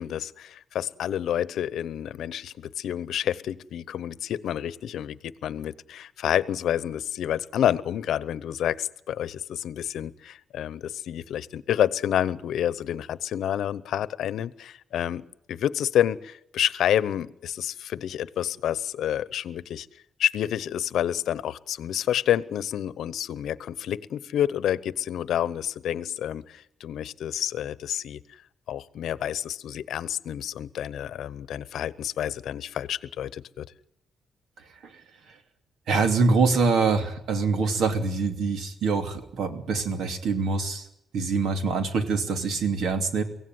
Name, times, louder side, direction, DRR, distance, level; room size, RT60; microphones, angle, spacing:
voice 1, 0.0-19.9 20.2-28.2 28.7-33.7, left 10 dB, 85° left, 18 dB, 0.8 m, -29 dB
voice 2, 35.9-40.9 41.1-43.2, right 4 dB, 80° right, 7 dB, 2.9 m, -24 dB
24.0 x 16.5 x 9.5 m, 0.77 s
cardioid pair, 105°, 0 cm